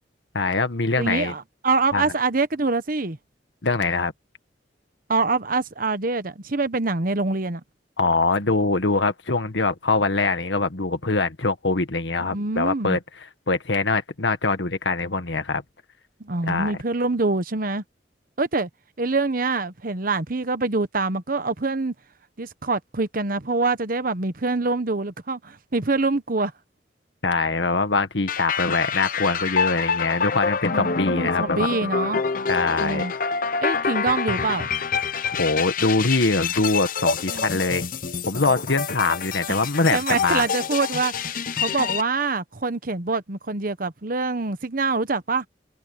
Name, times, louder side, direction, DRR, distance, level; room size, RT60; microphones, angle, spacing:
voice 1, 0.3-1.3 1.9-2.0 3.6-4.1 8.0-13.0 13.5-15.6 16.5-16.7 27.2-31.7 32.5-33.0 35.4-37.8 38.3-40.4, left 3 dB, 85° left, 1.7 m, -23 dB
voice 2, 1.0-3.2 5.1-7.6 12.3-13.0 16.2-17.8 18.4-18.7 19.0-21.9 22.4-26.5 30.7-32.2 32.8-33.1 33.6-34.7 37.3-37.6 39.9-45.5, right 3 dB, 50° right, 1.1 m, -25 dB
sound 1, 28.3-42.0, left 5 dB, 50° left, 0.9 m, -27 dB
head